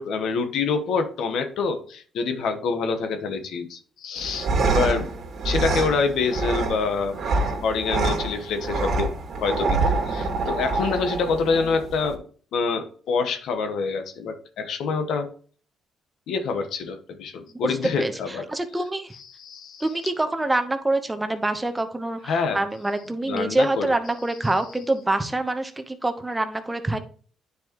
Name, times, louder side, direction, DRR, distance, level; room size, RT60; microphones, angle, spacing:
voice 1, 0.0-5.1 5.4-7.3 7.6-9.1 9.4-12.2 12.5-15.3 16.3-18.5 19.3-19.8 22.3-22.6 23.2-23.9, left 4 dB, 75° left, 7 dB, 1.2 m, -26 dB
sound 1, 4.2-12.2, right 3 dB, 55° right, 2.0 m, -26 dB
voice 2, 17.6-19.1 19.8-27.0, right 2 dB, 15° right, 8 dB, 1.0 m, -26 dB
9.6 x 4.7 x 3.0 m, 0.44 s
cardioid pair, 90°, 0 cm